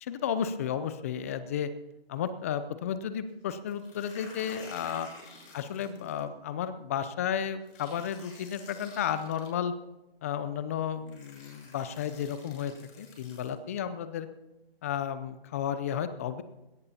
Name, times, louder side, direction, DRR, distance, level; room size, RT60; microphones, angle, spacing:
voice 1, 0.0-1.7 2.1-5.1 5.5-9.7 10.2-14.3 14.8-16.4, left 8 dB, 15° left, 12 dB, 0.4 m, -33 dB
sound 1, 3.7-6.2 7.7-9.5 10.5-10.6 11.1-13.5, left 3 dB, 30° left, 7.1 m, -51 dB
20.5 x 17.5 x 2.8 m, 1.0 s
figure-of-eight pair, 140°, 30 cm